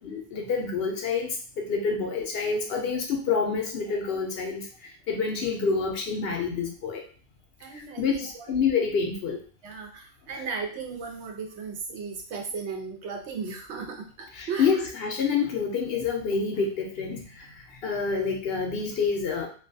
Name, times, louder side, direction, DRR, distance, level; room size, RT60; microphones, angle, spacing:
voice 1, 0.0-4.6 5.1-7.0 8.0-9.4 14.3-17.5 17.8-19.5, left 5 dB, 65° left, 2 dB, 0.8 m, -27 dB
voice 2, 7.6-8.6 9.6-14.9, right 5 dB, 80° right, 3 dB, 0.9 m, -36 dB
2.4 x 2.2 x 2.6 m, 0.41 s
omnidirectional pair, 1.1 m